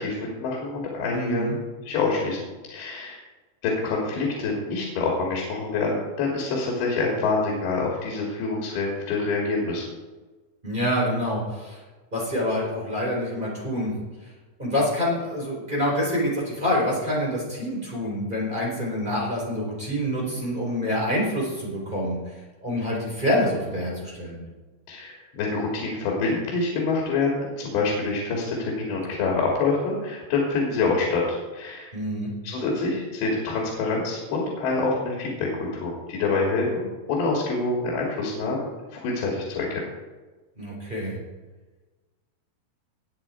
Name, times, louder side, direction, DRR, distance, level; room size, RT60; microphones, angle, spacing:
voice 1, 0.0-1.5 1.9-2.4 2.7-3.2 3.6-9.8 24.9-31.9 32.4-38.6 38.9-39.8, left 3 dB, 85° left, -2 dB, 4.5 m, -26 dB
voice 2, 1.0-1.6 10.6-11.8 12.1-13.9 14.6-22.2 22.6-24.4 31.9-32.3 40.6-41.2, left 1 dB, 10° right, -4 dB, 3.9 m, -26 dB
20.5 x 7.8 x 4.4 m, 1.3 s
omnidirectional pair, 4.9 m